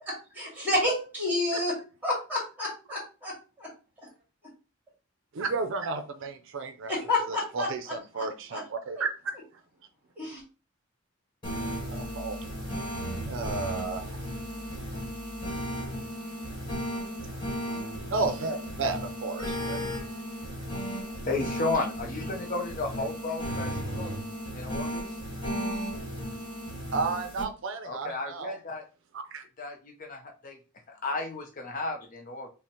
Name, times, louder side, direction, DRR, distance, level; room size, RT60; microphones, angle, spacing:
voice 1, 0.3-1.8 2.0-3.7 6.9-8.3 8.5-8.6 10.2-10.4, left 2 dB, 10° right, 2.0 m, -30 dB
voice 2, 5.3-6.9 7.3-9.4 11.9-12.4 13.2-14.2 18.1-19.8 26.9-28.6 29.1-29.4, right 3 dB, 65° right, 0.5 m, -32 dB
sound 1, 11.4-27.4, equal, 25° left, 1.4 m, -35 dB
voice 3, 21.3-24.1 24.5-25.0 27.8-28.8 29.6-30.6 30.9-32.5, left 2 dB, 40° left, 0.5 m, -33 dB
5.7 x 2.1 x 2.8 m
head